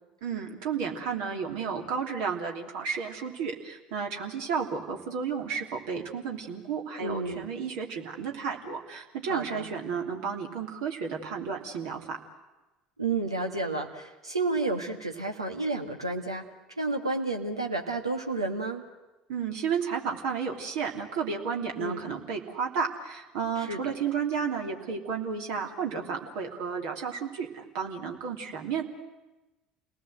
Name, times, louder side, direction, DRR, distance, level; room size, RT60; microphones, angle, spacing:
voice 1, 0.2-12.2 19.3-28.8, right 6 dB, 60° right, 2 dB, 3.1 m, -32 dB
voice 2, 7.0-7.4 9.3-9.6 13.0-16.5 16.8-18.8 21.8-22.0 23.6-23.9, right 3 dB, 85° right, 3 dB, 1.9 m, -31 dB
28.5 x 19.0 x 7.9 m, 1.1 s
figure-of-eight pair, 65°, 3 cm